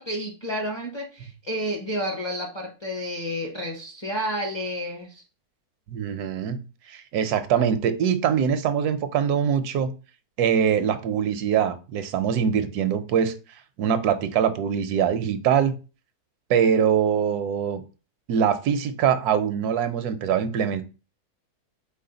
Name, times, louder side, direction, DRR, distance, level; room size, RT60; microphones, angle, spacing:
voice 1, 0.0-5.2, equal, 30° left, 0.5 m, -30 dB
voice 2, 5.9-6.6 6.9-9.9 10.4-13.3 13.8-15.7 16.5-17.8 18.3-20.8, right 8 dB, 85° right, 1.2 m, -23 dB
4.1 x 3.3 x 3.9 m
omnidirectional pair, 1.6 m